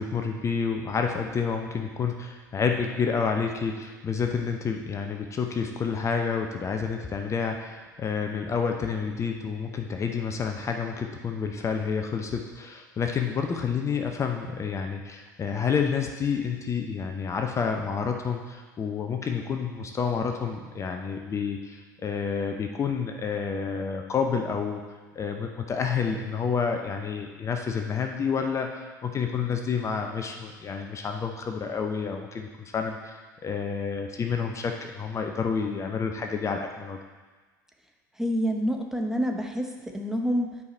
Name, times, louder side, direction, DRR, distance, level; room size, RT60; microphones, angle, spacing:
voice 1, 0.0-24.8 25.1-37.0, left 6 dB, 30° left, 4 dB, 0.7 m, -29 dB
voice 2, 38.2-40.6, equal, 5° right, 3 dB, 0.9 m, -27 dB
9.5 x 4.9 x 4.3 m, 1.3 s
figure-of-eight pair, 75°, 11 cm